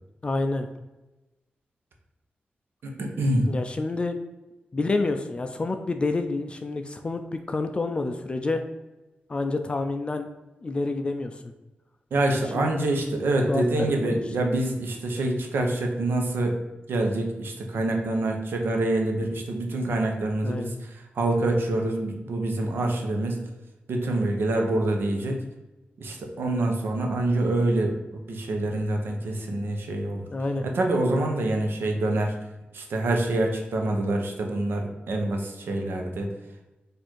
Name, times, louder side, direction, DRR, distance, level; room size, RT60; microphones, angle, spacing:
voice 1, 0.2-0.7 3.5-4.2 4.7-8.6 9.3-10.3 10.6-11.4 12.5-12.7 13.5-13.6 14.0-14.2 20.4-20.7 30.3-30.7, left 3 dB, 30° left, 7 dB, 0.3 m, -28 dB
voice 2, 2.8-3.5 12.1-16.6 16.9-20.7 21.1-23.4 23.9-25.4 26.0-30.3 30.6-32.3 32.7-36.3, right 2 dB, 80° right, 2 dB, 0.8 m, -26 dB
4.4 x 2.5 x 4.4 m, 1.0 s
wide cardioid pair, 135°, 4 cm